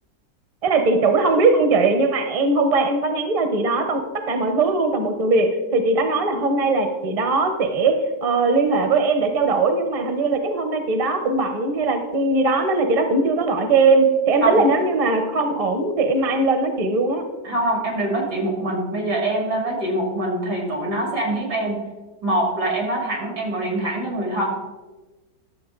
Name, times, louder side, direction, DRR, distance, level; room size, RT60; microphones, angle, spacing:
voice 1, 0.6-17.2, right 3 dB, 30° right, 7 dB, 0.7 m, -20 dB
voice 2, 17.4-21.8 22.2-24.5, right 1 dB, 85° right, 0 dB, 3.1 m, -24 dB
12.0 x 6.9 x 3.8 m, 1.2 s
omnidirectional pair, 1.7 m